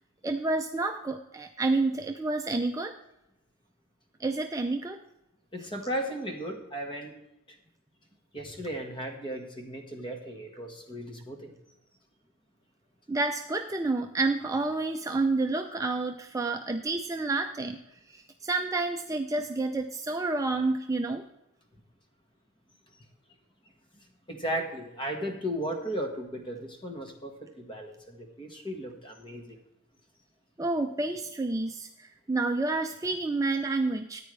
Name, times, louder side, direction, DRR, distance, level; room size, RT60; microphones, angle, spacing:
voice 1, 0.2-2.9 4.2-5.0 13.1-17.8 18.1-21.2 30.6-34.2, right 3 dB, 15° right, 5 dB, 0.4 m, -29 dB
voice 2, 5.5-7.1 8.3-11.5 24.3-27.3 27.6-29.5, equal, 20° left, 3 dB, 1.6 m, -35 dB
13.5 x 9.3 x 3.3 m, 0.89 s
head